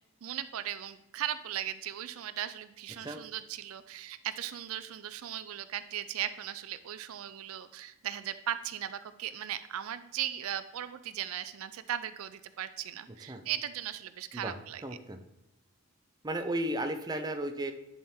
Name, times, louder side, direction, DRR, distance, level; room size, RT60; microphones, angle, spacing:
voice 1, 0.2-14.8, right 11 dB, 65° right, 12 dB, 0.4 m, -37 dB
voice 2, 14.8-15.2 16.2-17.7, right 1 dB, 20° right, 7 dB, 0.5 m, -34 dB
10.5 x 3.6 x 4.3 m, 0.94 s
head